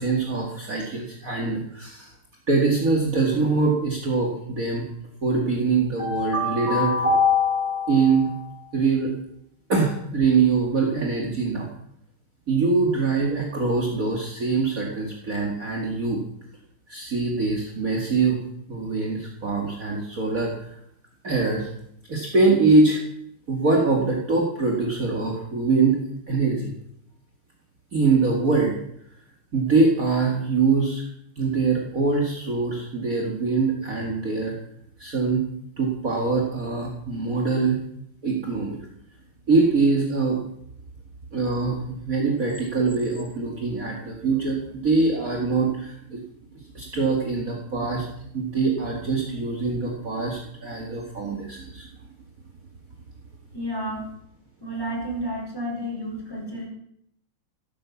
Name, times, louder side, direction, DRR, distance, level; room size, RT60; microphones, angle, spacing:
voice 1, 0.0-2.1 2.5-4.9 5.2-9.1 9.7-11.7 12.5-16.2 16.9-20.7 21.2-21.7 22.1-23.0 23.5-26.0 26.3-26.7 27.9-28.7 29.5-31.0 31.4-34.5 35.0-35.4 35.8-37.8 38.2-38.9 39.5-40.4 41.3-46.2 46.5-48.0 48.3-51.9, right 3 dB, 40° right, 0 dB, 2.4 m, -23 dB
voice 2, 53.5-54.1 54.6-56.7, equal, 10° left, -2 dB, 5.1 m, -31 dB
15.5 x 9.4 x 7.1 m, 0.73 s
omnidirectional pair, 2.3 m